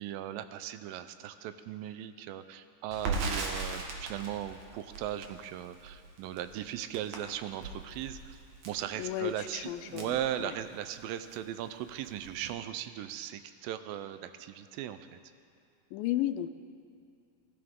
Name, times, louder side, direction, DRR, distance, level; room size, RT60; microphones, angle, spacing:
voice 1, 0.0-8.4 8.7-15.2, right 11 dB, 85° right, 11 dB, 2.3 m, -38 dB
Crackle, 2.9-11.0 11.3-11.4 11.8-12.5, right 3 dB, 60° right, 2.3 m, -39 dB
voice 2, 9.0-10.6 15.9-16.5, left 13 dB, 80° left, 10 dB, 2.2 m, -34 dB
19.5 x 12.5 x 3.7 m, 2.4 s
omnidirectional pair, 4.1 m